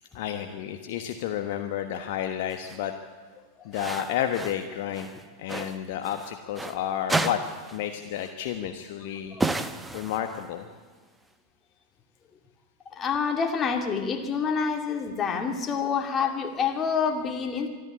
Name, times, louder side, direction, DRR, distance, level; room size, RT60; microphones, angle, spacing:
voice 1, 0.1-2.9 3.6-5.1 5.4-9.4 9.9-10.7 17.6-17.7, left 10 dB, 50° left, 6 dB, 1.2 m, -31 dB
sound 1, 2.5-2.8 3.7-4.6 4.9-6.8 7.1-7.9 8.1-8.3 9.4-10.5, right 2 dB, 10° right, 1.0 m, -32 dB
voice 2, 12.9-17.7, left 6 dB, 20° left, 4 dB, 2.5 m, -27 dB
24.5 x 13.0 x 8.4 m, 1.4 s
figure-of-eight pair, 90°, 0 cm